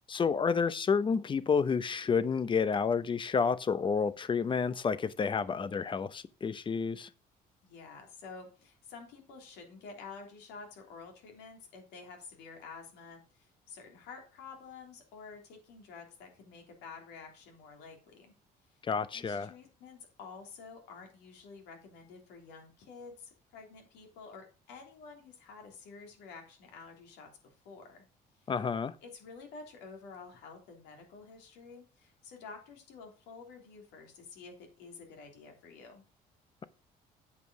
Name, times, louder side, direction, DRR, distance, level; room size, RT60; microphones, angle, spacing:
voice 1, 0.1-7.1 18.8-19.5 28.5-28.9, left 5 dB, 30° left, 0.7 m, -30 dB
voice 2, 7.6-18.3 19.1-28.1 28.4-28.5 29.0-36.0, left 4 dB, 90° left, 3.3 m, -50 dB
8.3 x 5.3 x 6.2 m
cardioid pair, 110°, 17 cm